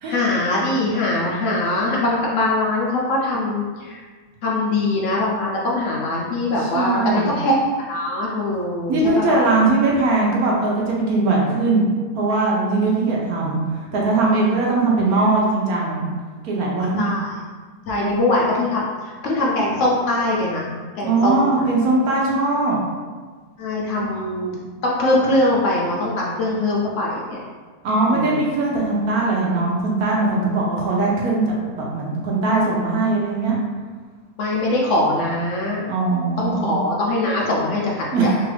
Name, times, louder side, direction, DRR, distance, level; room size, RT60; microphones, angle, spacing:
voice 1, 0.1-4.0 4.4-7.6 7.9-9.5 17.0-17.3 17.9-20.7 21.0-21.6 23.6-24.6 24.8-27.4 28.1-28.4 34.4-35.9 36.4-38.4, left 2 dB, 70° left, -4 dB, 0.7 m, -22 dB
voice 2, 6.6-7.3 8.9-11.9 12.1-13.6 13.9-16.1 16.4-17.0 18.0-18.1 21.0-22.8 27.8-31.4 31.8-33.6 34.6-34.7 35.9-36.8 38.1-38.3, right 3 dB, 70° right, -3 dB, 1.0 m, -20 dB
3.0 x 2.4 x 3.2 m, 1.5 s
omnidirectional pair, 1.7 m